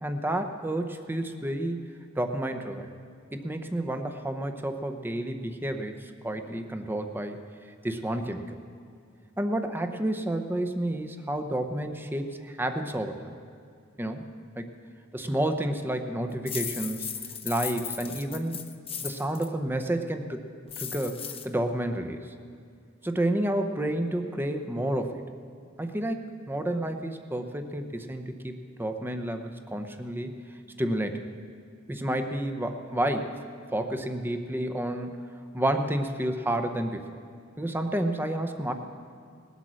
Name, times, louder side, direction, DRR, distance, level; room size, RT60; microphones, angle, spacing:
voice 1, 0.0-1.8 2.2-2.9 3.3-7.4 7.8-8.5 9.4-13.3 14.0-14.2 14.6-14.7 15.1-17.1 17.4-18.6 19.0-20.4 20.8-22.2 23.0-25.2 25.8-30.3 30.8-31.3 31.9-33.4 33.7-35.2 35.5-37.0 37.6-38.7, right 1 dB, 10° right, 6 dB, 0.8 m, -30 dB
sound 1, 16.5-19.5 20.7-21.5, left 8 dB, 30° left, 0.7 m, -36 dB
19.0 x 8.2 x 6.3 m, 2.4 s
head